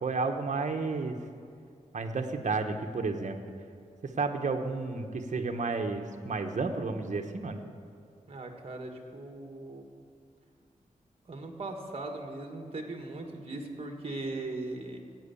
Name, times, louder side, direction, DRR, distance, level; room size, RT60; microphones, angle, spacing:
voice 1, 0.0-1.1 1.9-3.4 4.2-7.6, right 4 dB, 60° right, 5 dB, 1.1 m, -31 dB
voice 2, 8.3-9.9 11.3-15.0, right 2 dB, 45° right, 3 dB, 1.7 m, -39 dB
15.0 x 9.4 x 7.1 m, 2.3 s
wide cardioid pair, 105°, 14 cm